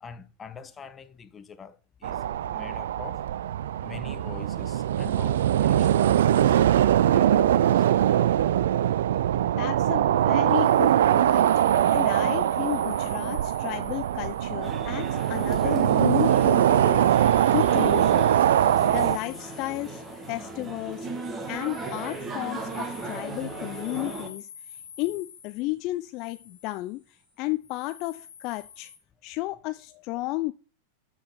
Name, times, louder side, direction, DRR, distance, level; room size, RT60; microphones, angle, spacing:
voice 1, 0.0-3.2 3.8-5.9 6.4-7.9, left 6 dB, 20° left, 1.1 m, -45 dB
sound 1, 2.0-19.2, right 11 dB, 70° right, 0.4 m, -22 dB
voice 2, 9.6-11.6 11.9-17.1 17.5-18.3 18.8-20.0 20.3-21.1 21.5-28.9 29.2-30.5, left 19 dB, 45° left, 0.5 m, -33 dB
sound 2, 10.5-29.0, left 8 dB, 65° left, 2.4 m, -48 dB
sound 3, 14.6-24.3, right 3 dB, 20° right, 2.1 m, -37 dB
12.5 x 4.6 x 4.0 m
hypercardioid pair, 95°, 0 cm